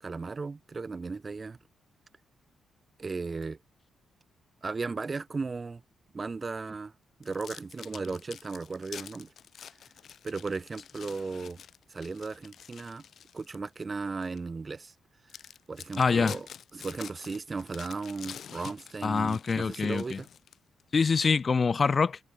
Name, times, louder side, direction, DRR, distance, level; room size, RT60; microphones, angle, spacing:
voice 1, 0.0-1.6 3.0-3.6 4.6-5.8 6.1-6.9 7.2-9.3 10.2-11.6 11.9-13.0 13.3-14.9 15.7-16.5 16.7-20.3, right 4 dB, 30° right, 1.8 m, -36 dB
sound 1, 7.2-13.7 14.2-14.4 14.9-15.0 15.3-20.8, left 8 dB, 60° left, 5.7 m, -47 dB
voice 2, 16.0-16.4 19.0-20.2 20.9-22.2, left 5 dB, 35° left, 1.4 m, -25 dB
cardioid pair, 120°, 0 cm